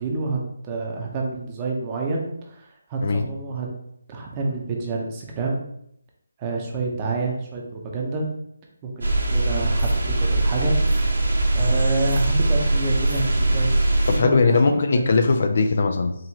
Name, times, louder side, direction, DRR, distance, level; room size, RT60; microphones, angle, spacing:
voice 1, 0.0-3.7 4.1-5.6 6.4-8.3 8.8-10.7 11.5-15.1, right 3 dB, 20° right, -1 dB, 0.7 m, -28 dB
sound 1, 9.0-14.2, right 2 dB, 80° right, 1.3 m, -21 dB
voice 2, 14.1-16.2, left 4 dB, 50° left, 6 dB, 0.4 m, -19 dB
4.5 x 3.0 x 2.8 m, 0.73 s
figure-of-eight pair, 160°, 0 cm